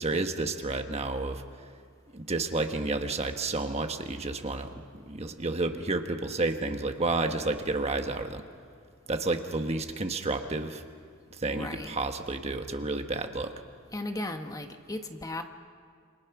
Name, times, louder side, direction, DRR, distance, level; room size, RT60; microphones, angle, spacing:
voice 1, 0.0-1.4 2.1-8.4 9.1-10.8 11.3-13.5, right 2 dB, 30° right, 6 dB, 1.2 m, -31 dB
voice 2, 11.5-11.9 13.9-15.4, left 1 dB, 15° left, 5 dB, 1.2 m, -36 dB
28.5 x 26.5 x 6.0 m, 2.1 s
head